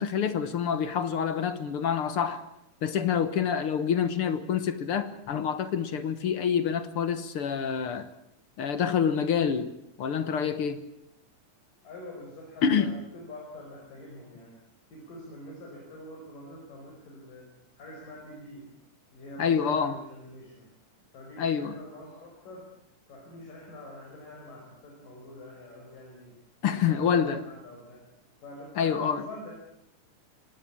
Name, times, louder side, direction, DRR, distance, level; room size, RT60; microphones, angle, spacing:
voice 1, 0.0-2.4 2.8-8.1 8.6-9.7 10.0-10.8 12.6-12.9 19.4-20.0 21.4-21.8 26.6-27.4 28.8-29.3, left 7 dB, 55° left, 1.6 m, -27 dB
voice 2, 11.8-12.9 13.1-14.6 14.9-17.5 17.8-18.7 19.1-20.7 21.1-22.7 23.1-26.3 26.7-28.0 28.4-29.5, left 1 dB, 80° left, 7.0 m, -45 dB
25.0 x 18.5 x 8.7 m
omnidirectional pair, 3.8 m